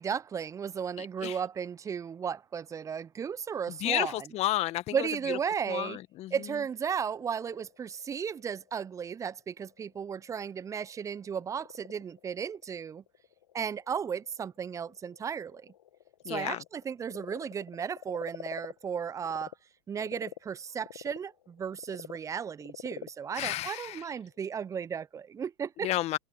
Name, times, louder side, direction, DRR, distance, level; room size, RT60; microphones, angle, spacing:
voice 1, 0.0-4.3 4.9-6.0 6.3-13.0 13.5-15.7 16.3-19.5 19.9-25.9, right 7 dB, 20° right, 0.7 m, -35 dB
voice 2, 1.0-1.4 3.8-5.4 5.7-6.3 16.3-16.6 23.3-24.0 25.8-26.2, left 15 dB, 40° left, 1.8 m, -32 dB
Frog, 6.7-19.6 19.9-24.6, left 11 dB, 70° left, 2.0 m, -49 dB
figure-of-eight pair, 90°, 17 cm